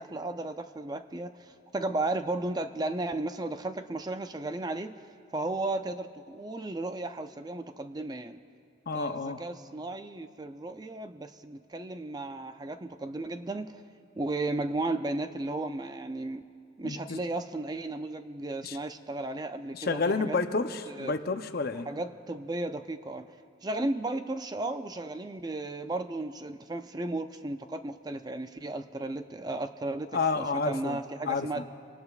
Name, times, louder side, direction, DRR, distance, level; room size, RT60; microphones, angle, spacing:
voice 1, 0.0-1.3 1.7-4.9 5.3-8.4 8.9-13.7 14.2-16.4 16.8-20.4 20.9-21.1 21.9-23.3 23.6-30.1 30.3-31.6, right 2 dB, 20° right, 9 dB, 0.4 m, -34 dB
voice 2, 8.9-9.4 16.8-17.2 18.6-18.8 19.7-21.9 30.1-31.0 31.2-31.5, left 4 dB, 50° left, 8 dB, 0.6 m, -30 dB
25.5 x 18.5 x 2.4 m, 2.3 s
head